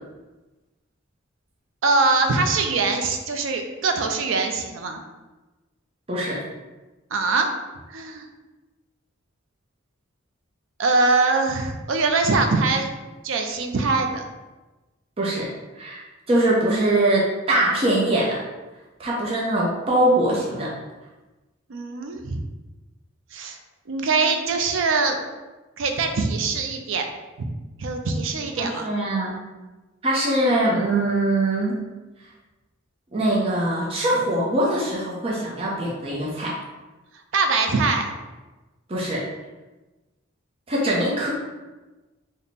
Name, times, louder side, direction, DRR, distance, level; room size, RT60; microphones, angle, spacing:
voice 1, 1.8-5.0 7.1-7.5 7.9-8.3 10.8-12.9 13.2-14.3 21.7-22.4 23.3-23.6 23.9-25.2 25.8-27.1 27.4-27.5 27.8-28.9 37.3-38.1, right 3 dB, 75° right, 5 dB, 0.4 m, -22 dB
voice 2, 6.1-6.4 15.2-15.5 15.8-16.0 16.3-18.4 19.0-20.7 28.6-29.5 30.0-31.8 33.1-36.6 38.9-39.3 40.7-41.3, right 1 dB, 30° right, -5 dB, 0.6 m, -22 dB
3.3 x 2.1 x 4.0 m, 1.2 s
head